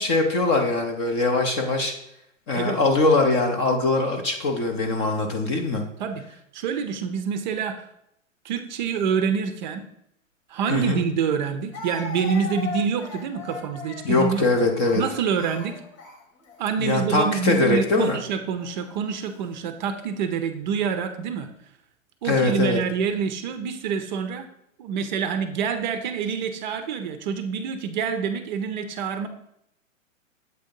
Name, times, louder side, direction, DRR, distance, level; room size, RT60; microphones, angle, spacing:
voice 1, 0.0-1.9 2.5-5.9 10.7-11.0 14.0-15.0 16.8-18.2 22.2-22.8, left 2 dB, 25° left, 3 dB, 0.4 m, -22 dB
voice 2, 6.5-7.8 8.4-9.8 10.5-14.5 15.0-15.8 16.6-21.5 22.2-24.5 24.8-29.3, right 6 dB, 35° right, 8 dB, 0.5 m, -26 dB
Speech, 10.6-10.7 11.7-16.6 17.4-17.7 18.6-19.2, left 5 dB, 70° left, 1.6 m, -38 dB
7.7 x 2.7 x 5.1 m, 0.77 s
hypercardioid pair, 135°, 40 cm